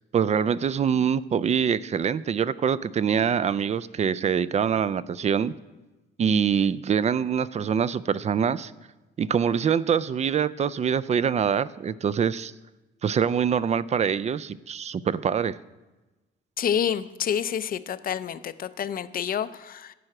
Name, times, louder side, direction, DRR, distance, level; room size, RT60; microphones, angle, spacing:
voice 1, 0.1-5.5 6.2-8.7 9.2-12.5 13.0-15.6, right 7 dB, 35° right, 18 dB, 0.3 m, -24 dB
voice 2, 16.6-19.9, left 8 dB, 45° left, 14 dB, 0.5 m, -28 dB
11.0 x 4.8 x 7.6 m, 1.1 s
cardioid pair, 90°, 20 cm